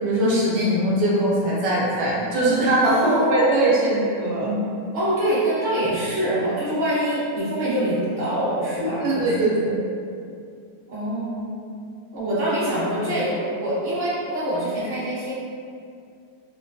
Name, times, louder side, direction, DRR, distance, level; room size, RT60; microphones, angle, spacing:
voice 1, 0.0-4.6 8.8-9.8, right 1 dB, 85° right, -6 dB, 1.3 m, -21 dB
voice 2, 2.8-3.8 4.9-9.5 10.9-11.6 12.1-15.3, right 1 dB, 40° right, -11 dB, 1.2 m, -25 dB
3.0 x 2.2 x 2.6 m, 2.4 s
omnidirectional pair, 1.8 m